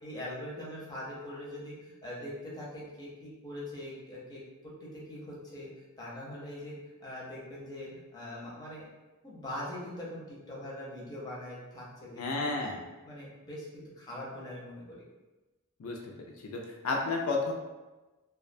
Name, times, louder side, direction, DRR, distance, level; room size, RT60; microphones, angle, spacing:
voice 1, 0.0-5.7 6.0-6.8 7.0-8.8 9.2-12.6 13.0-15.0, left 1 dB, 20° left, -6 dB, 0.6 m, -42 dB
voice 2, 12.2-12.8 15.8-16.1 16.4-17.5, left 3 dB, 70° left, 0 dB, 0.3 m, -32 dB
2.3 x 2.1 x 2.5 m, 1.1 s
head